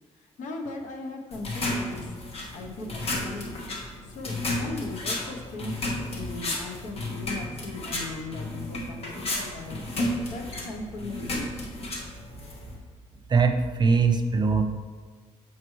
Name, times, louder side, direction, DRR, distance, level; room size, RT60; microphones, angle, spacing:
voice 1, 0.2-2.0 2.5-3.5 4.0-9.9 10.3-11.5, left 2 dB, 80° left, 3 dB, 0.9 m, -38 dB
sound 1, 1.3-12.8, left 1 dB, 55° left, 1.3 m, -33 dB
voice 2, 13.3-14.6, right 5 dB, 35° right, 7 dB, 0.7 m, -21 dB
7.5 x 5.9 x 3.1 m, 1.5 s
cardioid pair, 95°, 13 cm